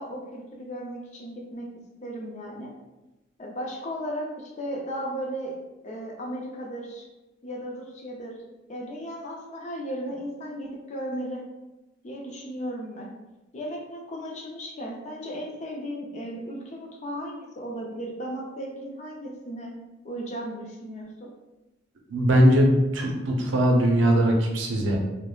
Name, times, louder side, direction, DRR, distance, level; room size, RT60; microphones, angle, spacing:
voice 1, 0.0-1.7 2.0-2.7 3.4-5.5 5.8-7.1 7.4-8.4 8.7-11.5 12.0-13.1 13.5-19.7 20.0-21.3, equal, 40° left, 0 dB, 0.5 m, -35 dB
voice 2, 22.1-25.0, equal, 90° right, 1 dB, 0.5 m, -20 dB
3.0 x 2.0 x 2.3 m, 1.0 s
head